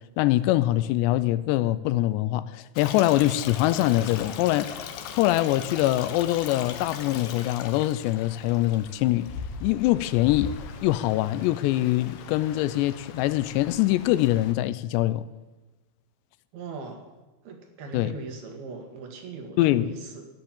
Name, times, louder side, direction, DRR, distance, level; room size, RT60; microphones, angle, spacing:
voice 1, 0.2-4.7 5.1-9.3 9.6-10.5 10.8-15.2 17.9-18.1 19.6-19.9, left 15 dB, 85° left, 2.8 m, -23 dB
Stream, 2.8-14.5, left 7 dB, 70° left, 2.3 m, -39 dB
voice 2, 16.5-17.1 17.4-20.3, right 4 dB, 70° right, 3.3 m, -39 dB
13.0 x 10.5 x 7.2 m
omnidirectional pair, 4.9 m